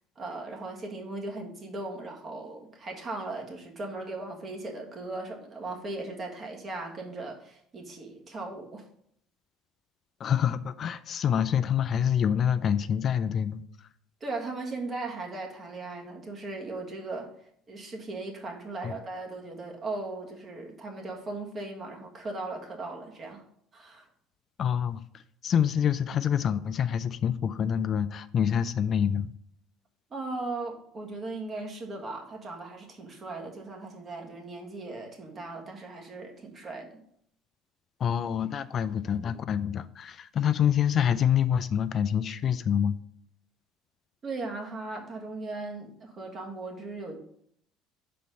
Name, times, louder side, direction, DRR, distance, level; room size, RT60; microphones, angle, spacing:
voice 1, 0.1-8.9 14.2-17.3 17.7-23.4 23.7-24.1 30.1-37.0 44.2-47.2, right 2 dB, 40° right, 1 dB, 1.6 m, -38 dB
voice 2, 10.2-13.6 18.8-18.9 24.6-25.0 25.4-29.3 38.0-43.0, left 8 dB, 45° left, 12 dB, 0.4 m, -26 dB
5.4 x 4.3 x 5.3 m, 0.69 s
supercardioid pair, 85°, 0 cm